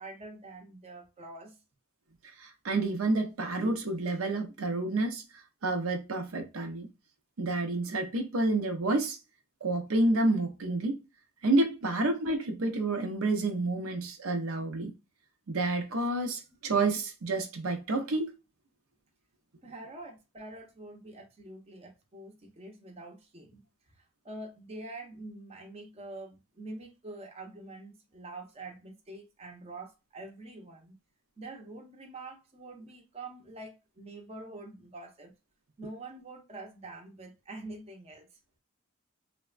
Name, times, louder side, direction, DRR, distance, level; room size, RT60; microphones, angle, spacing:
voice 1, 0.0-1.6 19.6-23.6 24.2-30.9 31.4-35.3 35.8-38.3, right 2 dB, 30° right, 0.6 m, -45 dB
voice 2, 2.4-5.2 5.6-6.9 7.4-9.2 9.6-11.0 11.4-14.9 15.5-18.3, right 2 dB, 75° right, 0.6 m, -29 dB
3.3 x 2.1 x 2.4 m
head